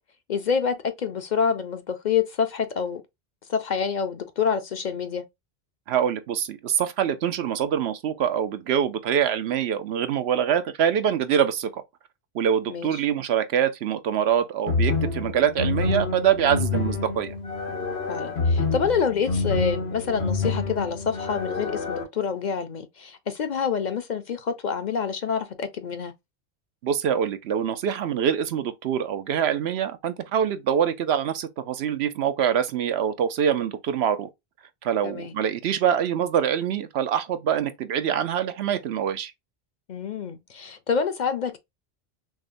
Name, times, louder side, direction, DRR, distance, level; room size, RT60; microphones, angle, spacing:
voice 1, 0.3-3.0 3.5-5.2 12.7-13.0 18.1-26.1 35.0-35.3 39.9-41.6, left 6 dB, 55° left, 0.6 m, -27 dB
voice 2, 5.9-11.8 12.3-17.3 26.8-34.3 34.8-39.3, right 9 dB, 85° right, 0.9 m, -24 dB
sound 1, 14.7-22.0, left 3 dB, 85° left, 1.5 m, -27 dB
6.0 x 2.1 x 2.5 m
omnidirectional pair, 1.1 m